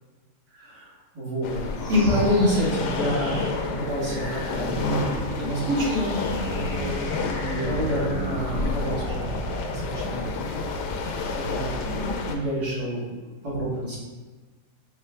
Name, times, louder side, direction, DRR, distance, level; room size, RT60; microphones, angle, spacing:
voice 1, 0.5-0.9 1.1-1.5 1.9-6.2 6.4-9.3 9.6-10.2 11.3-13.0 13.4-14.0, equal, 80° right, -9 dB, 2.3 m, -27 dB
sound 1, 1.4-12.4, left 4 dB, 85° left, 1.2 m, -30 dB
sound 2, 1.7-11.2, equal, 15° right, 0.7 m, -37 dB
sound 3, 3.3-8.9, right 2 dB, 55° right, 0.9 m, -38 dB
5.9 x 2.3 x 3.3 m, 1.3 s
omnidirectional pair, 1.7 m